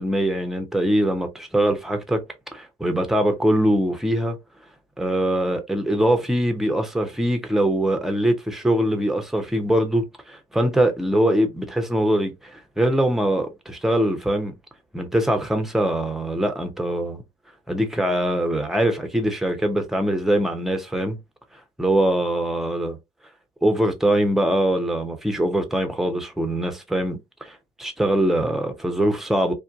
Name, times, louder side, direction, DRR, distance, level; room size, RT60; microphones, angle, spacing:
voice 1, 0.0-2.2 2.5-4.4 5.0-14.5 14.9-17.2 17.7-21.2 21.8-23.0 23.6-29.5, right 1 dB, ahead, 0.7 m, -22 dB
2.5 x 2.2 x 2.4 m
hypercardioid pair, 60°, 17 cm